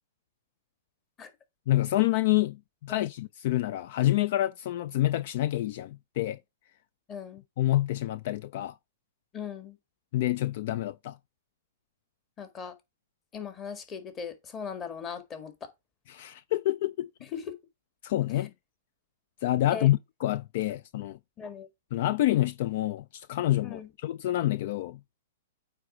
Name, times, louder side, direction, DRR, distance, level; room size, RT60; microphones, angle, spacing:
voice 1, 1.7-6.4 7.6-8.8 10.1-11.2 16.1-17.1 18.0-18.5 19.4-21.2 21.9-25.0, left 15 dB, 55° left, 0.3 m, -27 dB
voice 2, 7.1-7.4 9.3-9.8 12.4-12.8 13.3-15.7 17.3-17.5 19.7-19.9 21.4-21.7 23.6-23.9, left 6 dB, 25° left, 1.7 m, -39 dB
9.0 x 3.3 x 4.9 m
figure-of-eight pair, 110°, 0 cm